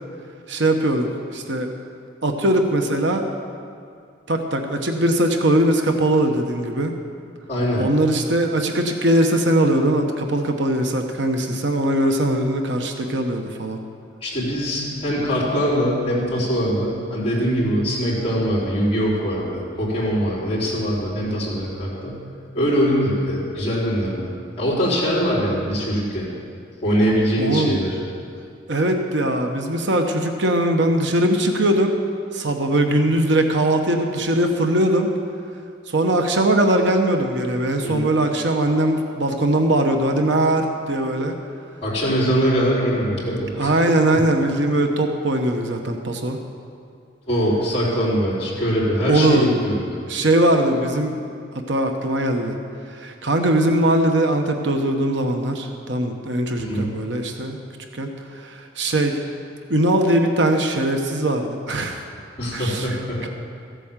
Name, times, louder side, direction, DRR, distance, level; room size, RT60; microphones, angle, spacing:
voice 1, 0.5-1.7 2.2-3.2 4.3-6.9 7.8-13.8 27.4-27.8 28.7-32.0 32.3-35.1 35.9-41.3 43.6-46.4 49.1-49.5 50.1-51.1 51.7-52.5 52.9-57.6 57.9-58.1 58.4-59.2 59.7-62.0 62.5-62.9 63.2-63.3, right 1 dB, 70° right, 4 dB, 1.1 m, -20 dB
voice 2, 7.5-7.8 14.2-22.2 22.5-24.3 24.6-26.3 26.8-28.0 37.8-38.0 41.8-43.7 44.1-44.3 47.3-49.8 56.6-56.9 62.4-63.2, equal, 30° left, -8 dB, 4.2 m, -22 dB
15.0 x 8.4 x 7.4 m, 2.3 s
head